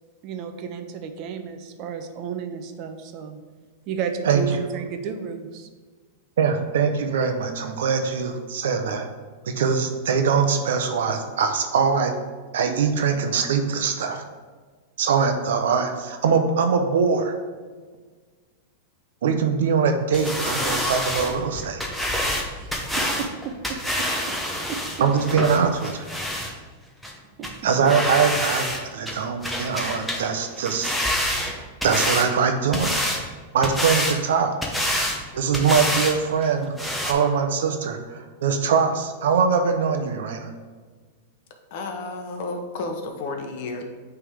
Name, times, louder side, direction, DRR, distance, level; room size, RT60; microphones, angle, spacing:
voice 1, 0.2-3.4 3.9-5.7 22.4-24.4 24.7-24.8 27.1-27.7, right 6 dB, 40° right, 7 dB, 0.6 m, -33 dB
voice 2, 6.4-9.1 9.4-12.2 12.5-14.2 15.0-17.4 19.2-21.8 25.0-26.1 27.6-30.9 31.8-33.0 33.5-34.5 35.3-40.5, right 6 dB, 80° right, 6 dB, 0.8 m, -22 dB
sound 1, 20.1-26.5 27.0-27.1 27.4-27.6 27.9-28.8 29.1-30.3 30.6-32.3 32.7-33.2 33.6-34.2 34.6-35.2 35.5-36.2 36.4-36.5 36.8-37.1, left 1 dB, ahead, 0.8 m, -27 dB
voice 3, 41.7-43.8, left 3 dB, 55° left, 4 dB, 0.9 m, -31 dB
8.5 x 3.5 x 3.6 m, 1.4 s
supercardioid pair, 145°, 0 cm